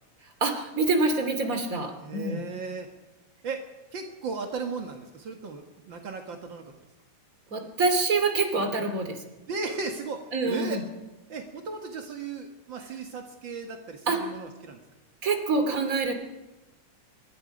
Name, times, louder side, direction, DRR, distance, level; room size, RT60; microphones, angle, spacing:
voice 1, 0.4-2.4 7.5-9.2 10.3-10.8 14.1-14.3 15.2-16.1, right 3 dB, 25° right, 6 dB, 2.3 m, -26 dB
voice 2, 2.0-2.9 3.4-3.7 3.9-6.7 9.5-10.8 11.3-14.8, right 4 dB, 65° right, 4 dB, 1.1 m, -36 dB
25.0 x 23.0 x 5.3 m, 1.1 s
omnidirectional pair, 4.6 m